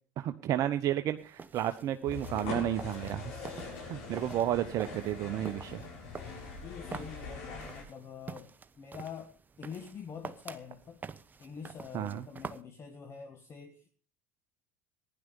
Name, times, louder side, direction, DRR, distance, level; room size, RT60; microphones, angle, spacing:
voice 1, 0.2-3.4 3.8-5.8 11.9-12.2, right 12 dB, 50° right, 9 dB, 0.8 m, -32 dB
sound 1, 1.2-12.6, right 5 dB, 25° right, 1.0 m, -47 dB
sound 2, 2.1-7.8, left 4 dB, 70° left, 6.7 m, -42 dB
voice 2, 6.6-9.3 9.6-11.0 11.4-13.9, left 6 dB, 35° left, 6 dB, 1.6 m, -45 dB
15.5 x 11.0 x 5.3 m, 0.40 s
hypercardioid pair, 75°, 8 cm